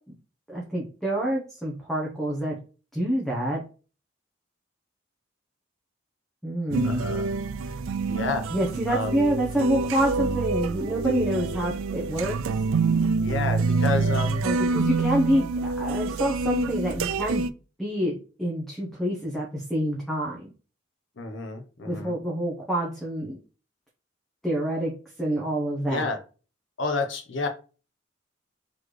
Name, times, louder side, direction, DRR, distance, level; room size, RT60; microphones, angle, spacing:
voice 1, 0.5-2.6 2.9-3.6 6.4-7.1 8.5-12.4 14.4-17.5 17.8-20.5 21.8-23.4 24.4-24.9 25.2-26.1, right 1 dB, ahead, -3 dB, 0.8 m, -27 dB
sound 1, 6.7-17.5, right 4 dB, 90° right, 0.3 m, -26 dB
voice 2, 6.8-7.3 7.7-7.8 8.1-8.4 8.9-9.3 13.2-14.4 21.2-22.1 25.9-26.2 26.8-27.5, left 3 dB, 65° left, 5 dB, 0.8 m, -30 dB
4.0 x 3.1 x 3.2 m, 0.35 s
head